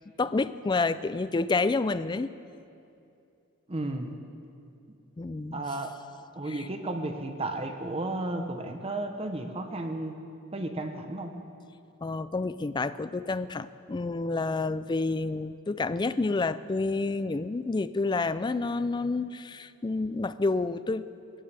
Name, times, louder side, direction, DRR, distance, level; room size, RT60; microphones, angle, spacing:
voice 1, 0.2-2.3 5.2-5.6 6.5-6.7 12.0-21.0, left 3 dB, 20° left, 14 dB, 0.3 m, -29 dB
voice 2, 3.7-4.1 5.5-5.9 6.4-10.1 10.5-11.3, right 2 dB, 25° right, 5 dB, 0.8 m, -33 dB
20.5 x 16.5 x 3.4 m, 2.6 s
head